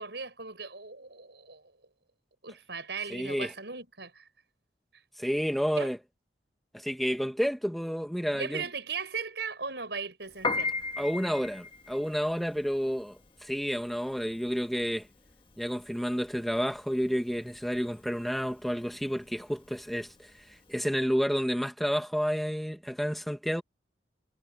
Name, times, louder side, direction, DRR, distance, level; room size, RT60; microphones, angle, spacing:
voice 1, 0.0-1.6 2.4-4.3 5.8-5.9 8.3-10.7, right 5 dB, 70° right, 7.0 m, -38 dB
voice 2, 3.1-3.5 5.2-6.0 6.7-8.6 11.0-15.1 15.6-20.3 20.7-23.6, equal, ahead, 1.5 m, -30 dB
Piano, 10.3-20.7, left 3 dB, 30° left, 1.6 m, -37 dB
head